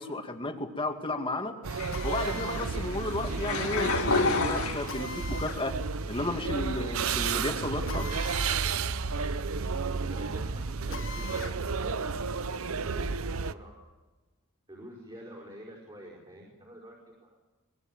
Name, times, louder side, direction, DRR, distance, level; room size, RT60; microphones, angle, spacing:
voice 1, 0.0-1.6 2.0-5.7 6.1-8.1, left 2 dB, 25° left, 5 dB, 2.3 m, -33 dB
sound 1, 1.6-13.5, right 5 dB, 70° right, 0.8 m, -32 dB
sound 2, 1.7-5.4 5.8-6.5, left 3 dB, 85° left, 2.4 m, -31 dB
Drill, 1.9-2.7 4.9-5.6 7.9-8.6 9.0-9.1 10.9-11.6, left 5 dB, 60° left, 1.7 m, -41 dB
voice 2, 9.8-13.7 14.7-17.3, equal, 25° right, -3 dB, 5.4 m, -47 dB
24.0 x 21.0 x 7.5 m, 1.2 s
head